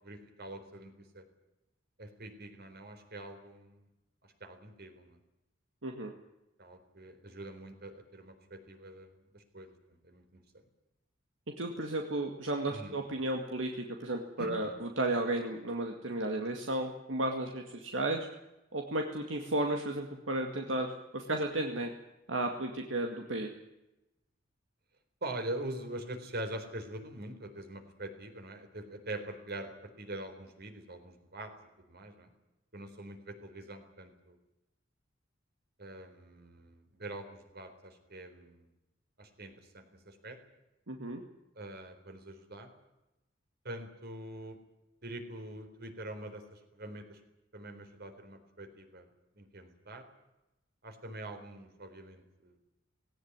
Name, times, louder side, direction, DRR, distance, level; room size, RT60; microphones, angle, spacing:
voice 1, 0.0-1.2 2.0-3.9 4.2-5.2 6.6-10.6 12.7-13.0 14.4-14.7 25.2-31.5 31.9-32.3 32.7-34.4 35.8-38.7 39.2-40.4 41.6-42.7 43.6-44.6 45.0-47.2 47.5-49.1 49.3-50.0 50.8-52.6, right 1 dB, 55° right, 7 dB, 4.1 m, -44 dB
voice 2, 5.8-6.1 11.6-18.3 18.7-21.9 22.3-23.5 40.9-41.2, right 1 dB, 75° right, 3 dB, 2.2 m, -33 dB
19.0 x 18.0 x 9.7 m, 0.96 s
head